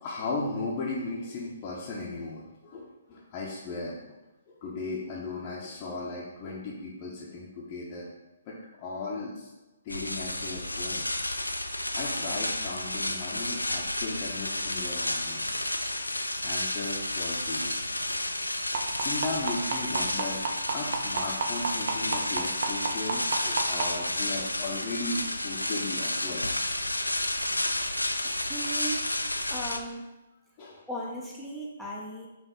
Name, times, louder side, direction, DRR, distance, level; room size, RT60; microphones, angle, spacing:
voice 1, 0.0-4.2 4.6-8.1 8.5-9.5 9.8-11.2 12.0-15.5 16.4-17.8 19.0-20.4 20.7-26.4 30.6-30.8, left 3 dB, 30° left, -6 dB, 0.8 m, -36 dB
sound 1, 9.9-29.8, left 1 dB, 85° left, 0.3 m, -31 dB
sound 2, 18.7-23.8 24.9-25.0 25.4-25.5 26.0-26.1, right 5 dB, 50° right, 0.7 m, -28 dB
voice 2, 28.2-29.1 29.5-30.1 30.9-32.3, right 1 dB, ahead, -5 dB, 0.7 m, -37 dB
5.3 x 2.6 x 3.6 m, 1.1 s
figure-of-eight pair, 130°, 0 cm